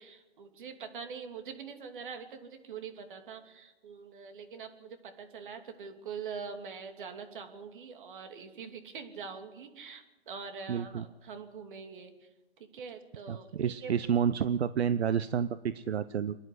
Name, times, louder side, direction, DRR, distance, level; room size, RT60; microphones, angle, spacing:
voice 1, 0.0-12.1 12.7-13.9, right 6 dB, 50° right, 5 dB, 2.9 m, -44 dB
voice 2, 10.7-11.1 13.3-16.4, right 8 dB, 75° right, 14 dB, 0.8 m, -30 dB
27.0 x 10.5 x 9.9 m, 1.1 s
hypercardioid pair, 155°, 32 cm